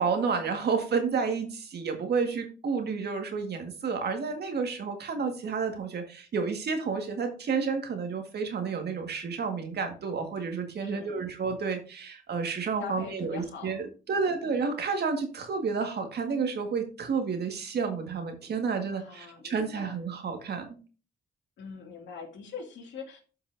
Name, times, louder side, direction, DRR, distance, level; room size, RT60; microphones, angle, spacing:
voice 1, 0.0-20.7, right 5 dB, 55° right, 5 dB, 1.8 m, -30 dB
voice 2, 10.8-11.3 12.8-14.4 18.9-20.0 21.6-23.2, left 6 dB, 70° left, 1 dB, 2.5 m, -43 dB
12.5 x 5.4 x 2.7 m, 0.37 s
cardioid pair, 90°, 20 cm